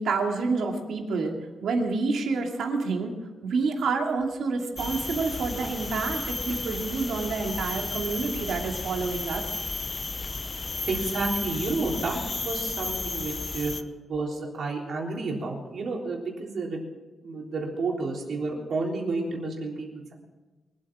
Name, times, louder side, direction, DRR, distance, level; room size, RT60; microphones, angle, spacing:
voice 1, 0.0-1.4 1.6-9.5, right 4 dB, 85° right, 2 dB, 2.5 m, -28 dB
sound 1, 4.8-13.8, left 3 dB, 25° left, 0.7 m, -33 dB
voice 2, 10.9-13.7 14.1-16.8 17.2-20.1, right 3 dB, 55° right, -1 dB, 3.6 m, -30 dB
24.0 x 8.7 x 6.2 m, 1.2 s
wide cardioid pair, 160°, 0 cm